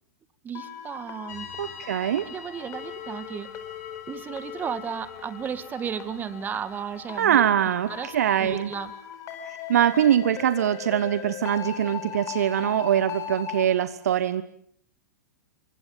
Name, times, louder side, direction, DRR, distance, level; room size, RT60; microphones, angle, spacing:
voice 1, 0.4-1.5 2.3-3.5 4.1-7.5 7.9-8.9, right 7 dB, 20° right, 15 dB, 1.7 m, -34 dB
sound 1, 0.5-13.6, left 9 dB, 30° left, 4.6 m, -39 dB
sound 2, 1.3-8.9, left 6 dB, 60° left, 7.9 m, -48 dB
voice 2, 1.6-2.3 7.2-8.7 9.4-14.4, right 10 dB, 60° right, 14 dB, 1.1 m, -23 dB
28.5 x 24.5 x 7.4 m, 0.65 s
figure-of-eight pair, 100°, 10 cm